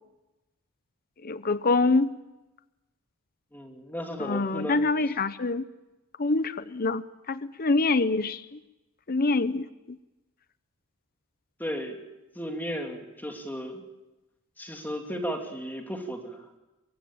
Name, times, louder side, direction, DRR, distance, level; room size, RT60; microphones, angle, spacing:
voice 1, 1.2-2.1 4.2-5.6 6.2-8.6 9.1-10.0, left 3 dB, 40° left, 14 dB, 0.8 m, -25 dB
voice 2, 3.5-4.8 11.6-12.0 12.3-13.8 14.6-16.4, equal, 10° left, 3 dB, 2.8 m, -34 dB
24.0 x 23.0 x 8.8 m, 1.0 s
head